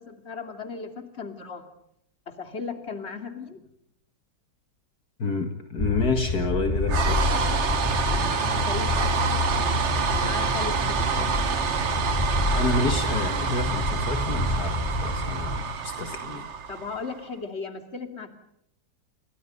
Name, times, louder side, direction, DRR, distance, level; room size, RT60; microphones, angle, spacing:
voice 1, 0.0-1.7 2.3-3.6 8.1-9.3 10.1-11.2 16.7-18.3, left 4 dB, 35° left, 6 dB, 3.0 m, -36 dB
voice 2, 5.2-7.4 11.2-11.3 12.2-16.5, left 3 dB, 60° left, 6 dB, 2.4 m, -29 dB
sound 1, 5.8-15.6, left 2 dB, 20° left, 3.4 m, -28 dB
sound 2, 6.9-17.2, right 6 dB, 45° right, 1.3 m, -28 dB
29.5 x 24.5 x 5.4 m, 0.76 s
omnidirectional pair, 1.9 m